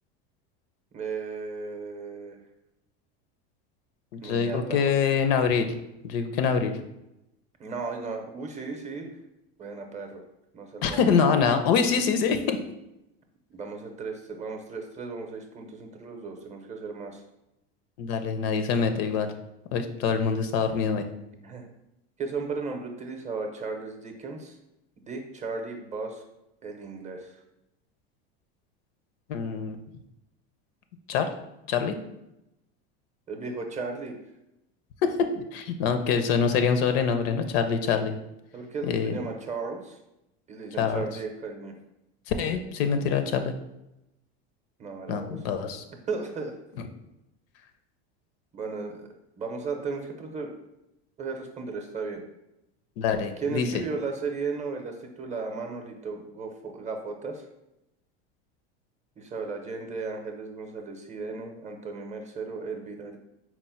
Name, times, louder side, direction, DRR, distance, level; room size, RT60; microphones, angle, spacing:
voice 1, 0.9-2.4 4.2-4.9 7.6-9.1 9.6-10.2 10.5-11.0 13.5-17.2 21.3-21.7 22.2-24.6 25.1-26.2 26.6-27.4 33.3-34.2 38.5-40.0 40.5-41.7 44.8-45.4 46.1-46.5 48.5-49.1 49.4-50.6 51.2-52.2 53.4-57.5 59.2-63.2, right 4 dB, 25° right, 3 dB, 0.6 m, -35 dB
voice 2, 4.1-5.7 6.0-6.7 10.8-12.6 18.0-19.3 19.7-21.0 29.3-29.8 31.1-31.3 31.7-32.0 35.0-38.2 38.8-39.2 40.8-41.0 42.3-43.5 45.1-45.8 53.0-53.7, left 6 dB, 70° left, 8 dB, 0.6 m, -25 dB
4.3 x 2.1 x 4.3 m, 0.88 s
supercardioid pair, 115°, 31 cm